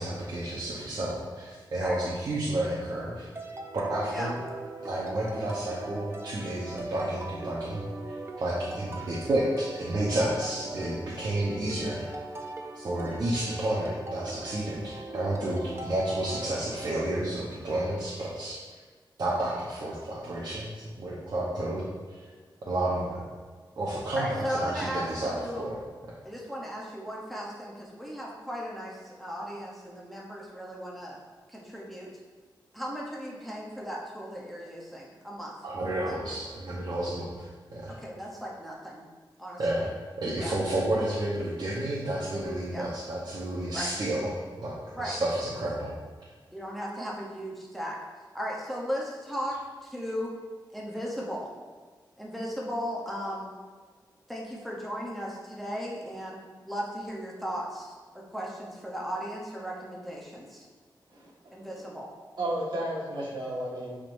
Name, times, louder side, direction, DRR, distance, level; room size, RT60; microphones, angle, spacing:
voice 1, 0.0-3.3 3.7-4.3 4.8-12.1 12.7-18.6 19.2-22.2 22.6-23.3 23.8-25.8 35.6-37.9 39.6-39.8 40.2-45.9, right 1 dB, 55° right, -7 dB, 0.9 m, -31 dB
sound 1, 3.4-17.1, right 2 dB, 30° right, 0.6 m, -40 dB
voice 2, 24.1-25.7 26.2-31.2 31.5-32.1 32.7-35.5 36.0-36.2 37.9-39.1 39.4-39.9 40.4-40.5 42.7-42.9 43.7-43.9 45.0-45.2 46.5-48.0 48.3-49.6 49.8-50.3 50.7-51.5 52.2-53.5 54.3-60.7 61.5-62.1, equal, ahead, -4 dB, 0.8 m, -36 dB
voice 3, 61.1-61.8 62.4-64.0, right 1 dB, 70° right, -5 dB, 1.6 m, -33 dB
9.7 x 3.7 x 2.6 m, 1.5 s
wide cardioid pair, 175°, 8 cm